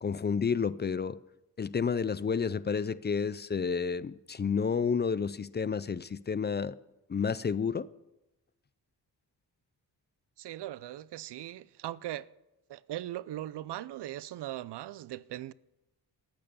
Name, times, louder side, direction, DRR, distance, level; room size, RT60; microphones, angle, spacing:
voice 1, 0.0-1.2 1.6-6.8 7.1-7.9, left 6 dB, 25° left, 0.3 m, -30 dB
voice 2, 10.4-12.3 12.7-15.5, right 13 dB, 75° right, 0.5 m, -39 dB
14.0 x 9.0 x 6.8 m
wide cardioid pair, 125°, 41 cm